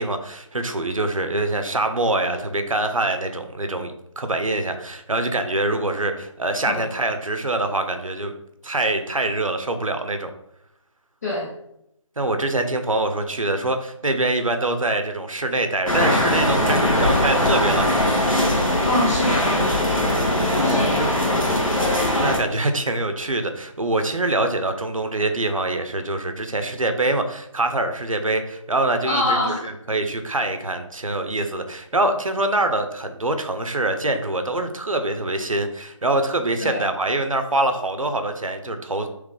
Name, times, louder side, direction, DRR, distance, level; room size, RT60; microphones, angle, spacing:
voice 1, 0.0-8.3 8.6-10.3 12.2-17.9 20.3-21.3 22.2-39.1, right 2 dB, 85° right, 7 dB, 0.6 m, -24 dB
sound 1, 15.9-22.4, left 1 dB, 85° left, 1.3 m, -20 dB
voice 2, 18.8-19.6 20.6-21.1 29.1-29.7 36.6-36.8, left 1 dB, 30° left, -5 dB, 0.6 m, -24 dB
3.2 x 3.1 x 3.8 m, 0.79 s
figure-of-eight pair, 155°, 17 cm